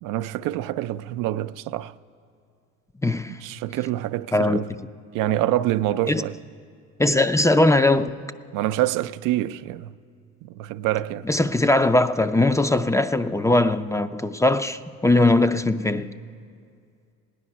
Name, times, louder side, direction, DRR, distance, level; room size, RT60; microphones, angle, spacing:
voice 1, 0.0-1.9 3.4-4.7 5.1-6.4 8.5-10.0 10.4-11.3, right 14 dB, 80° right, 0.5 m, -26 dB
voice 2, 3.0-3.4 4.3-4.6 6.1-6.2 7.0-8.2 11.3-16.1, left 2 dB, 10° left, 0.4 m, -20 dB
17.0 x 10.0 x 5.8 m
supercardioid pair, 70°, 32 cm